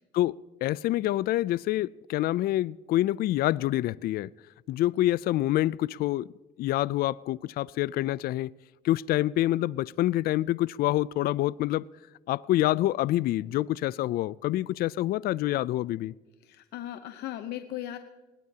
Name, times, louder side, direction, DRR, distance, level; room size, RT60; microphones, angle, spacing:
voice 1, 0.6-4.3 4.7-6.3 6.6-8.5 8.8-11.9 12.3-16.1, left 15 dB, 65° left, 0.4 m, -27 dB
voice 2, 16.4-18.0, left 13 dB, 80° left, 0.9 m, -37 dB
20.0 x 19.0 x 2.8 m
cardioid pair, 110°, 17 cm